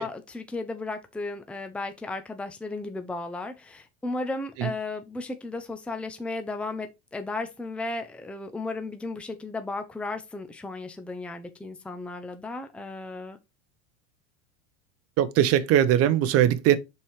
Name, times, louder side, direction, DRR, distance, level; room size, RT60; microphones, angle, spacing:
voice 1, 0.0-13.4, left 2 dB, 5° left, 0.7 m, -35 dB
voice 2, 15.2-16.8, right 11 dB, 40° right, 0.9 m, -20 dB
5.4 x 4.4 x 4.7 m
supercardioid pair, 120°, 38 cm